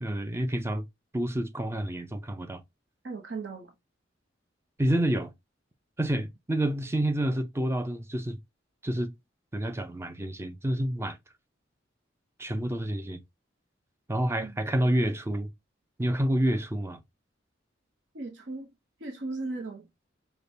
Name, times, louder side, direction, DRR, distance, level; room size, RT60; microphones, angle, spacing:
voice 1, 0.0-0.8 1.1-2.6 4.8-5.3 6.0-8.4 8.8-9.1 9.5-11.2 12.4-13.2 14.1-15.5 16.0-17.0, right 1 dB, 15° right, 0.4 m, -28 dB
voice 2, 3.0-3.7 14.4-14.6 18.1-18.7 19.0-19.9, right 3 dB, 70° right, 0.8 m, -37 dB
5.0 x 2.2 x 2.6 m
head